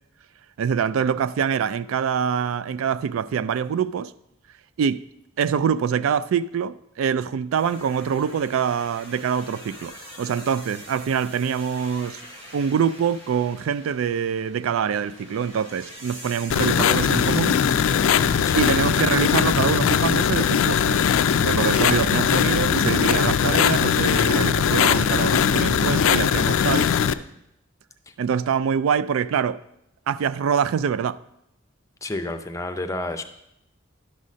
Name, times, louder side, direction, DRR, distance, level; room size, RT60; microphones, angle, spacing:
voice 1, 0.6-4.1 4.8-5.0 5.4-12.2 12.5-17.6 18.6-21.0 21.3-26.9 28.2-29.6 30.1-31.2, right 7 dB, 80° right, 0.3 m, -25 dB
sound 1, 7.5-26.4, equal, 65° right, 1.9 m, -46 dB
sound 2, 16.5-27.1, left 7 dB, 75° left, 0.4 m, -20 dB
voice 2, 32.0-33.2, left 2 dB, 15° left, 0.5 m, -30 dB
11.5 x 4.1 x 6.2 m
head